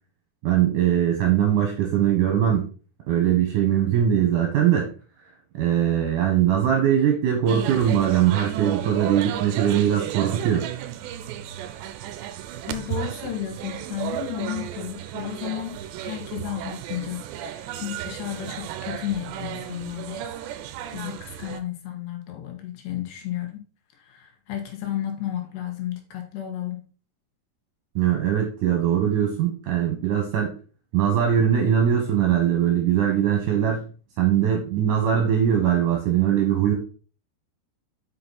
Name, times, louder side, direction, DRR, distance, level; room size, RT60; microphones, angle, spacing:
voice 1, 0.4-2.7 3.1-4.9 5.6-10.7 28.0-30.5 30.9-33.9 34.2-36.7, right 9 dB, 65° right, 2 dB, 2.3 m, -21 dB
sound 1, 7.5-21.6, right 11 dB, 90° right, 2.9 m, -34 dB
voice 2, 12.7-20.3 20.7-23.6 24.0-26.8, left 12 dB, 75° left, 3 dB, 3.5 m, -33 dB
7.8 x 5.6 x 4.0 m, 0.37 s
omnidirectional pair, 5.0 m